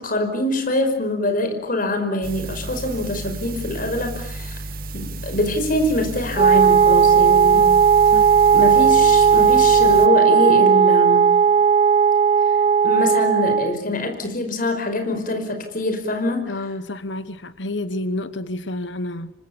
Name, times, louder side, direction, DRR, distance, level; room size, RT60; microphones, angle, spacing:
voice 1, 0.0-4.6 4.9-7.7 8.5-11.3 12.5-12.6 12.8-16.6, left 1 dB, 50° left, 5.3 m, -24 dB
sound 1, 2.2-10.1, right 2 dB, 55° right, 1.5 m, -33 dB
Wind instrument woodwind instrument, 6.3-13.8, right 6 dB, 35° right, 1.2 m, -15 dB
voice 2, 16.5-19.3, left 1 dB, 80° left, 1.3 m, -29 dB
28.0 x 24.5 x 7.1 m
head